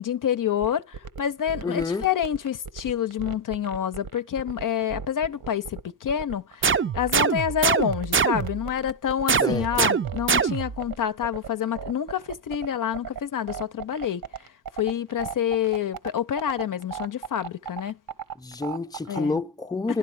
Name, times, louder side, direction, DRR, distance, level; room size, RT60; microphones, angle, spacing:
voice 1, 0.0-14.2 14.7-18.0 19.1-19.4, left 9 dB, 55° left, 0.7 m, -28 dB
sound 1, 0.6-19.4, right 7 dB, 70° right, 1.1 m, -36 dB
voice 2, 1.6-2.1 9.4-9.9 18.4-20.0, left 3 dB, 10° left, 0.7 m, -28 dB
sound 2, 6.6-8.7 9.3-10.9, right 6 dB, 35° right, 0.6 m, -24 dB
11.5 x 11.5 x 4.8 m
cardioid pair, 55°, 37 cm